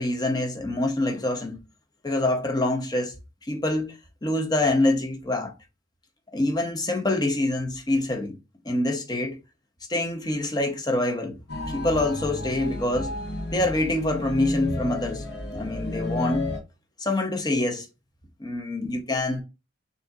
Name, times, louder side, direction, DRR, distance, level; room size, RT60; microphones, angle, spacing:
voice 1, 0.0-1.6 2.0-3.1 3.5-4.0 4.2-5.5 6.3-8.4 8.6-9.4 9.9-11.4 11.7-13.1 13.5-15.2 15.5-16.5 17.0-17.9 18.4-19.4, left 2 dB, 20° left, 0.8 m, -25 dB
sound 1, 11.5-16.6, left 2 dB, 55° left, 1.1 m, -32 dB
6.7 x 2.7 x 2.4 m
head